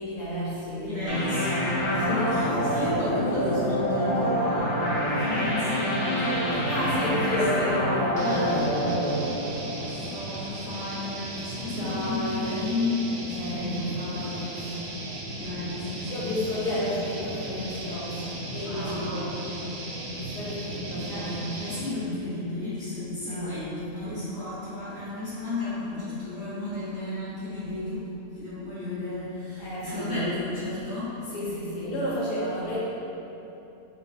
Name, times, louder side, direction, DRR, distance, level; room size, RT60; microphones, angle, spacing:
voice 1, 0.0-1.4 2.1-3.1 6.5-8.9 11.7-12.7 13.3-14.9 16.0-19.4 20.1-21.5 23.3-23.5 29.6-30.3 31.3-32.8, left 1 dB, 85° left, -8 dB, 1.6 m, -32 dB
voice 2, 0.8-7.9 8.2-8.6 9.7-13.8 14.1-14.4 15.4-16.5 18.6-19.8 20.9-28.0 28.3-31.2, left 2 dB, 45° left, -13 dB, 1.5 m, -34 dB
sound 1, 1.1-10.4, equal, 65° left, 1.4 m, -26 dB
sound 2, 8.2-21.9, right 1 dB, 65° right, 0.8 m, -37 dB
4.2 x 2.5 x 3.3 m, 3.0 s
omnidirectional pair, 1.7 m